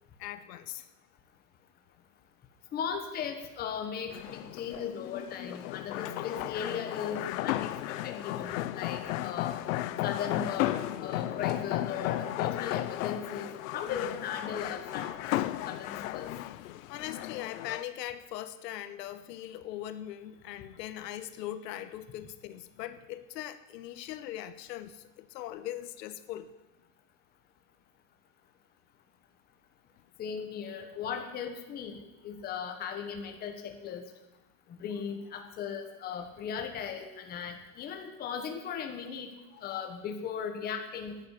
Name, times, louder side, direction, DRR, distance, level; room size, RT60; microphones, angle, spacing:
voice 1, 0.2-0.9 16.6-26.5 34.9-35.0 35.4-35.5 39.5-39.9, left 12 dB, 75° left, 12 dB, 1.1 m, -41 dB
voice 2, 2.7-9.6 10.0-15.3 15.7-16.3 30.2-32.0 32.2-34.0 34.8-39.3 39.6-41.2, left 7 dB, 20° left, 4 dB, 1.2 m, -37 dB
sound 1, 4.1-17.8, left 15 dB, 55° left, 0.7 m, -34 dB
11.5 x 8.8 x 9.9 m, 1.0 s
supercardioid pair, 175°, 49 cm